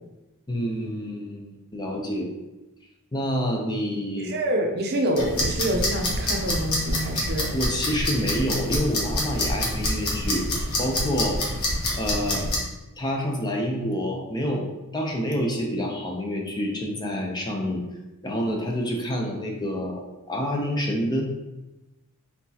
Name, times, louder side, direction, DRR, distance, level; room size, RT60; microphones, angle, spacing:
voice 1, 0.5-2.3 3.1-4.3 7.5-10.4 10.8-11.4 12.0-12.5 13.0-14.7 14.9-17.8 18.2-20.0 20.3-21.2, equal, 20° left, 0 dB, 0.6 m, -27 dB
voice 2, 4.2-7.5, right 1 dB, 45° right, 2 dB, 0.6 m, -26 dB
sound 1, 5.2-12.6, left 1 dB, 80° left, 1.2 m, -27 dB
4.3 x 4.1 x 2.8 m, 1.0 s
head